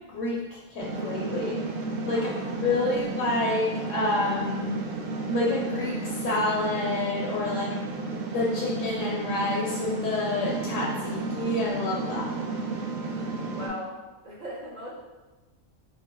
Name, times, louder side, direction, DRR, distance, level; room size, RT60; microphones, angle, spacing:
voice 1, 0.1-1.6 2.0-4.8 5.3-7.7 8.3-12.3, left 2 dB, 70° left, -3 dB, 0.9 m, -28 dB
sound 1, 0.8-13.7, right 3 dB, 75° right, 0.9 m, -33 dB
voice 2, 2.1-2.8 12.1-12.6 13.1-13.2 13.5-13.9 14.2-14.9, equal, 40° right, -6 dB, 0.7 m, -40 dB
2.9 x 2.2 x 4.2 m, 1.2 s
omnidirectional pair, 1.4 m